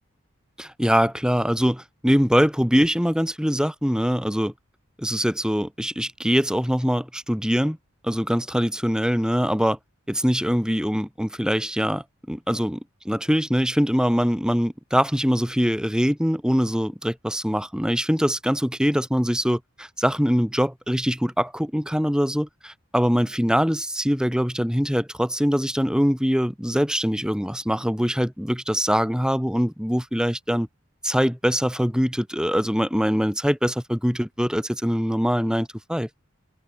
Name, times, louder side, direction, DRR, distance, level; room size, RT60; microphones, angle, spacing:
voice 1, 0.6-4.5 5.0-7.8 8.0-9.8 10.1-12.8 13.0-30.7 31.0-36.1, equal, 5° right, 7.8 m, -23 dB
head